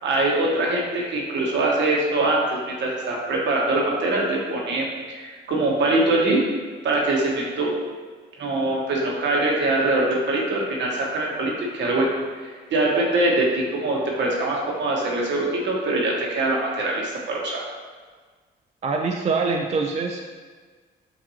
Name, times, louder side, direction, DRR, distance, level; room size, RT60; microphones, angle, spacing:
voice 1, 0.0-6.4 6.8-7.7 8.4-12.1 12.7-17.6, right 2 dB, 65° right, -2 dB, 1.2 m, -23 dB
voice 2, 18.8-20.2, right 4 dB, 35° right, 2 dB, 0.4 m, -24 dB
7.2 x 2.6 x 2.8 m, 1.5 s
cardioid pair, 90°, 20 cm